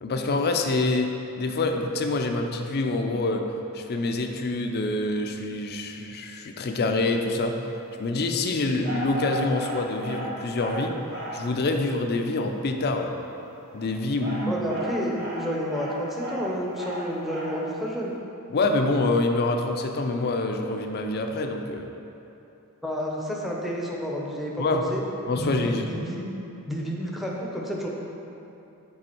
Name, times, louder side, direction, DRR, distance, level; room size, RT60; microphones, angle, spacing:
voice 1, 0.0-1.1 1.4-3.5 3.7-7.6 8.0-11.0 11.3-13.2 13.7-14.6 18.5-21.9 24.6-24.8 25.3-25.9, left 2 dB, 45° left, 4 dB, 0.5 m, -26 dB
sound 1, 8.8-11.5 13.6-17.7, right 1 dB, 45° right, 1.2 m, -35 dB
voice 2, 14.5-18.1 22.8-25.0 25.4-26.3 26.7-27.9, equal, ahead, -3 dB, 0.8 m, -30 dB
7.7 x 3.8 x 4.5 m, 2.9 s
head